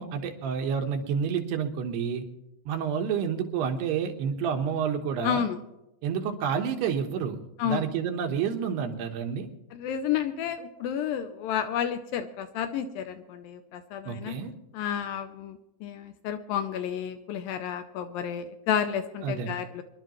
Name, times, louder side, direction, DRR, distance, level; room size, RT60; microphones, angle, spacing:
voice 1, 0.0-2.2 2.7-5.5 6.0-9.5 14.1-14.5 19.2-19.5, right 7 dB, 85° right, 5 dB, 3.2 m, -29 dB
voice 2, 5.2-5.6 7.6-7.9 9.7-14.4 14.7-19.8, left 9 dB, 80° left, 8 dB, 2.1 m, -31 dB
25.0 x 11.5 x 3.1 m, 0.90 s
omnidirectional pair, 4.6 m